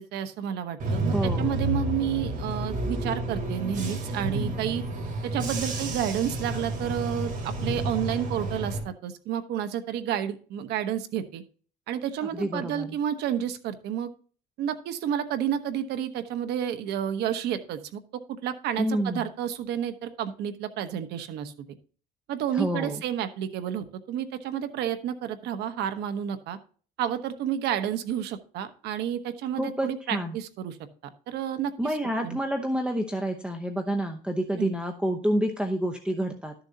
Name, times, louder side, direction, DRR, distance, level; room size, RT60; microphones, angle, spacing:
voice 1, 0.0-4.8 5.2-11.4 11.9-14.1 14.6-18.0 18.4-21.5 22.3-26.6 27.0-30.8 31.3-31.9 32.2-32.4 34.6-34.7, right 9 dB, 80° right, 9 dB, 1.1 m, -30 dB
Bus / Engine, 0.8-8.8, right 2 dB, 55° right, 3.8 m, -30 dB
voice 2, 1.1-1.6 12.3-13.0 18.8-19.3 22.5-23.0 29.6-30.4 31.8-36.5, right 1 dB, 5° right, 5 dB, 0.9 m, -28 dB
12.5 x 7.0 x 2.8 m, 0.41 s
cardioid pair, 110°, 17 cm